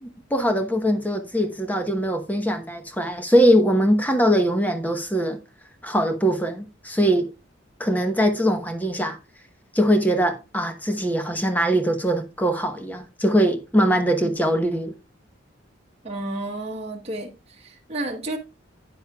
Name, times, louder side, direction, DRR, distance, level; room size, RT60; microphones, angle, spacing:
voice 1, 0.0-5.4 5.8-7.3 7.8-9.2 9.7-14.9, equal, 10° left, 1.1 m, -22 dB
voice 2, 16.0-18.4, right 2 dB, 30° right, 1.2 m, -32 dB
12.5 x 9.2 x 2.3 m
head